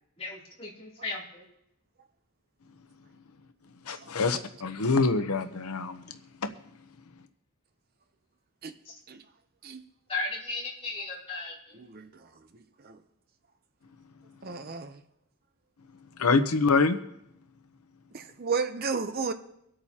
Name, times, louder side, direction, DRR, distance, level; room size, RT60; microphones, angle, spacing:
voice 1, 0.2-1.4 3.9-4.0 8.8-8.9 10.1-11.9, left 3 dB, 25° left, -5 dB, 2.9 m, -36 dB
voice 2, 3.9-6.0 16.2-17.0, left 4 dB, 80° left, 8 dB, 0.8 m, -25 dB
voice 3, 11.8-12.3 12.8-13.0 14.4-15.0 18.1-19.3, right 5 dB, 45° right, 9 dB, 0.6 m, -33 dB
24.5 x 8.7 x 2.8 m, 0.79 s
head